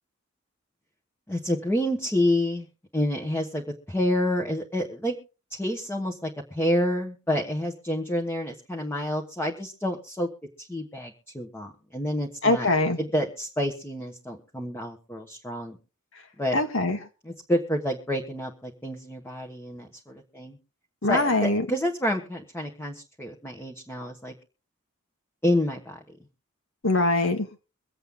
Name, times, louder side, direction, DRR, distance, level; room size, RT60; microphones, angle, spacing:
voice 1, 1.3-2.7 2.9-5.2 5.6-10.3 10.6-12.7 13.0-15.8 16.4-16.6 17.2-20.6 21.1-24.3 25.4-26.0, left 1 dB, 10° left, 1.4 m, -28 dB
voice 2, 12.4-13.0 16.5-17.0 21.0-21.7 26.8-27.5, left 2 dB, 75° left, 1.9 m, -22 dB
23.5 x 8.0 x 3.7 m
head